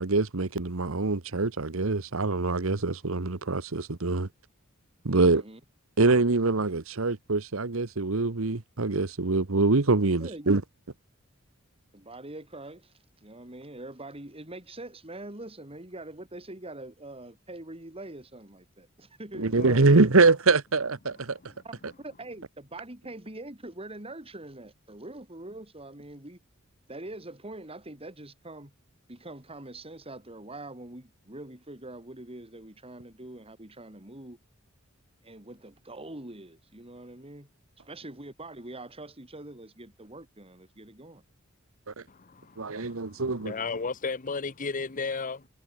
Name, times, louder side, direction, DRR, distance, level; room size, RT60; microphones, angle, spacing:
voice 1, 0.0-4.3 5.0-5.4 6.0-10.6 19.3-21.4 41.9-42.0 42.6-43.5, right 3 dB, 70° right, 1.2 m, -24 dB
voice 2, 5.1-5.6 10.2-10.6 11.9-12.9 13.2-20.1 21.6-21.7 22.0-26.4 26.9-28.7 29.1-34.4 35.2-37.5 37.8-41.2, right 2 dB, 30° right, 4.1 m, -43 dB
voice 3, 19.6-19.9 42.1-45.5, left 4 dB, 40° left, 0.9 m, -34 dB
head